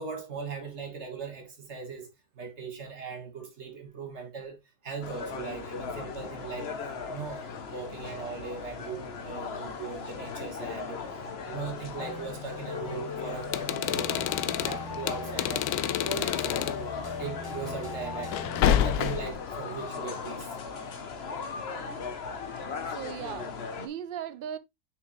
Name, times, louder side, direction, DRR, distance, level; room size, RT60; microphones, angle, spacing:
voice 1, 0.0-2.1 2.4-6.7 7.1-11.0 11.4-16.7 17.2-18.4 18.6-20.6, right 5 dB, 45° right, 1.8 m, -39 dB
sound 1, 5.0-23.9, left 5 dB, 45° left, 1.0 m, -38 dB
sound 2, 12.0-19.3, left 4 dB, 30° left, 0.4 m, -39 dB
sound 3, 13.4-16.8 18.3-19.4, left 11 dB, 75° left, 1.0 m, -28 dB
voice 2, 22.4-24.6, right 9 dB, 75° right, 0.5 m, -40 dB
6.4 x 4.9 x 3.1 m
omnidirectional pair, 1.7 m